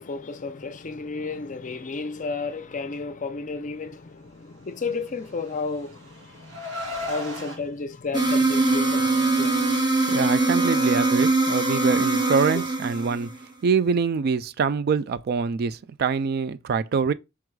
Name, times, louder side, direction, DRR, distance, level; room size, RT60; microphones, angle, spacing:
voice 1, 0.0-6.7 7.0-9.6, left 4 dB, 40° left, 0.5 m, -32 dB
Car, 5.1-7.6, left 1 dB, 80° right, 2.6 m, -35 dB
sound 1, 8.1-13.4, right 3 dB, 25° right, 0.9 m, -22 dB
voice 2, 10.1-13.3 13.6-17.1, right 5 dB, 50° right, 0.3 m, -24 dB
4.7 x 4.6 x 2.3 m
head